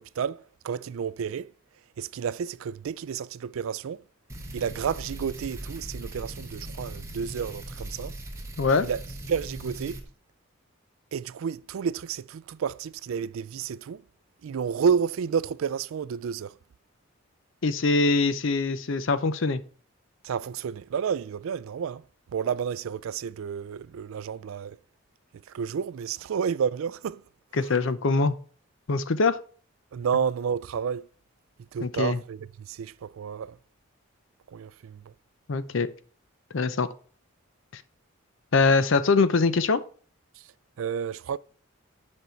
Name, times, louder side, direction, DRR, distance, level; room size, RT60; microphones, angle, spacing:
voice 1, 0.0-1.5 2.0-4.0 4.5-8.2 8.8-9.0 9.3-10.0 11.1-14.0 14.4-16.6 20.2-22.0 22.3-24.8 25.5-27.2 29.9-31.1 31.7-33.6 34.5-35.1 40.4-40.5 40.8-41.4, right 7 dB, 75° right, 0.3 m, -30 dB
sound 1, 4.3-10.0, right 1 dB, 15° right, 1.3 m, -39 dB
voice 2, 8.6-8.9 17.6-19.6 27.6-28.4 28.9-29.4 31.8-32.2 35.5-35.9 36.5-36.9 37.7-37.8 38.5-39.8, left 4 dB, 65° left, 0.6 m, -23 dB
9.3 x 5.4 x 4.5 m
head